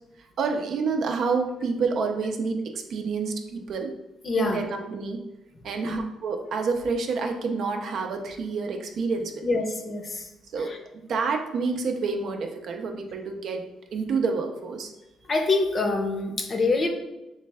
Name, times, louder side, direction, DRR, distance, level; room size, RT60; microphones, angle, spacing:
voice 1, 0.4-3.9 4.4-5.2 5.6-9.5 10.5-10.8 11.1-13.7 13.9-14.9, right 4 dB, 65° right, 4 dB, 0.5 m, -28 dB
voice 2, 4.2-4.6 5.8-6.0 9.4-10.2 10.7-10.8 15.3-16.9, left 3 dB, 40° left, 4 dB, 0.6 m, -25 dB
3.2 x 3.2 x 3.4 m, 0.95 s
cardioid pair, 90°, 0 cm